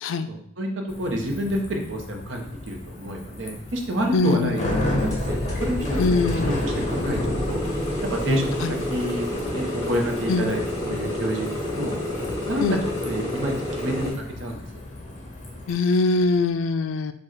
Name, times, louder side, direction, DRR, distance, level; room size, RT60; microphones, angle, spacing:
voice 1, 0.3-5.8 6.5-7.6 8.0-8.5 8.9-12.6 13.0-14.1 14.4-14.6, equal, 75° right, 2 dB, 0.8 m, -29 dB
Bicycle, 0.9-15.7, left 1 dB, 40° left, 0.8 m, -32 dB
voice 2, 4.1-4.6 6.0-6.5 8.6-8.7 10.3-10.5 12.6-12.8 15.7-17.1, left 3 dB, 75° left, 10 dB, 0.3 m, -22 dB
sound 1, 5.0-14.1, left 1 dB, 20° left, 1.4 m, -30 dB
4.7 x 2.4 x 4.5 m, 0.67 s
head